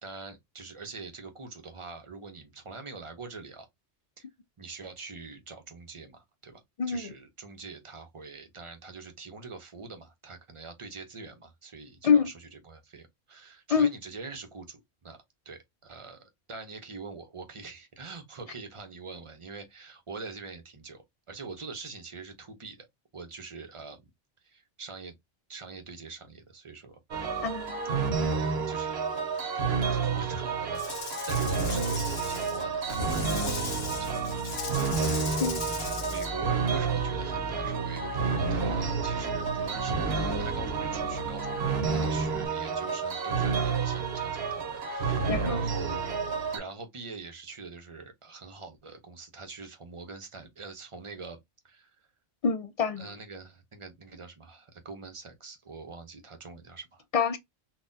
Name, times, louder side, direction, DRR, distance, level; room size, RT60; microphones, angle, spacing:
voice 1, 0.0-3.7 4.2-4.3 4.6-6.6 6.9-15.2 15.5-22.9 23.1-24.1 24.4-25.1 25.5-27.0 27.4-27.5 28.4-29.0 29.5-34.8 35.1-46.0 46.5-51.4 51.6-51.9 53.0-57.0, right 4 dB, 30° right, 0.7 m, -44 dB
voice 2, 6.8-7.1 12.0-12.3 13.7-13.9 27.4-28.1 35.4-35.6 45.3-45.6 52.4-53.1 57.1-57.4, left 6 dB, 55° left, 0.4 m, -26 dB
sound 1, 27.1-46.6, right 5 dB, 65° right, 1.1 m, -30 dB
Rattle / Rattle (instrument), 30.7-36.3, left 7 dB, 80° left, 1.0 m, -39 dB
Bass guitar, 32.9-42.5, right 3 dB, 90° right, 1.1 m, -39 dB
4.0 x 2.3 x 2.5 m
omnidirectional pair, 1.1 m